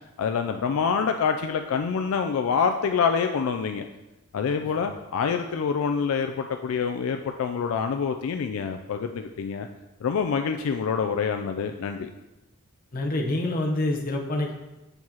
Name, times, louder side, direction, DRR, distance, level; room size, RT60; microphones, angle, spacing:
voice 1, 0.2-3.9 4.3-9.7 10.0-12.1, left 6 dB, 75° left, 6 dB, 0.3 m, -26 dB
voice 2, 12.9-14.5, left 1 dB, 40° left, 0 dB, 0.8 m, -27 dB
7.8 x 4.6 x 2.8 m, 1.0 s
head